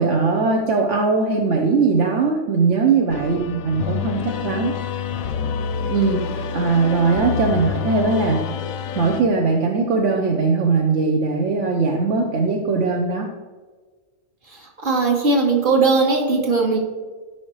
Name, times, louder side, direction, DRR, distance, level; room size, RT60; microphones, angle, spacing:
voice 1, 0.0-4.7 5.9-8.4 9.0-13.3 16.1-16.2, right 4 dB, 65° right, 1 dB, 1.1 m, -20 dB
sound 1, 3.1-9.2, left 7 dB, 85° left, 1.0 m, -27 dB
voice 2, 14.8-16.8, right 3 dB, 40° right, 0 dB, 1.7 m, -18 dB
13.0 x 5.8 x 3.2 m, 1.4 s
omnidirectional pair, 1.4 m